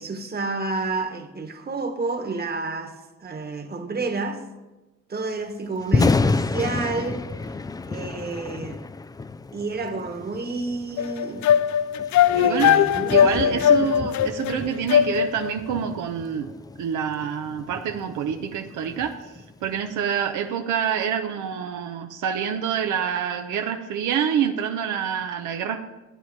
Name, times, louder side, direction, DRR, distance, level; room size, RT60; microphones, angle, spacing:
voice 1, 0.0-4.4 5.1-7.2 7.9-8.8 9.5-11.5 12.3-13.8, right 3 dB, 30° right, 1.4 m, -30 dB
Thunder, 5.8-19.9, left 3 dB, 15° left, 0.3 m, -30 dB
sound 1, 11.0-15.5, left 9 dB, 70° left, 0.5 m, -19 dB
voice 2, 12.4-12.8 13.1-16.5 16.8-19.3 19.6-25.8, right 8 dB, 85° right, 0.8 m, -27 dB
12.0 x 9.0 x 4.6 m
cardioid pair, 90°, 30 cm